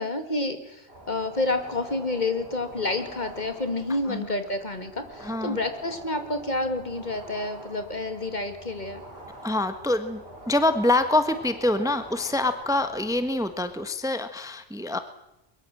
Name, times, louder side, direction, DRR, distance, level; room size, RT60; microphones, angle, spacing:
voice 1, 0.0-9.0, left 2 dB, 40° left, 8 dB, 2.6 m, -29 dB
sound 1, 0.9-13.9, right 1 dB, 55° right, 4.9 m, -45 dB
voice 2, 5.2-5.6 9.4-15.0, left 2 dB, 5° right, 10 dB, 1.3 m, -25 dB
22.5 x 22.5 x 7.7 m, 0.89 s
omnidirectional pair, 1.2 m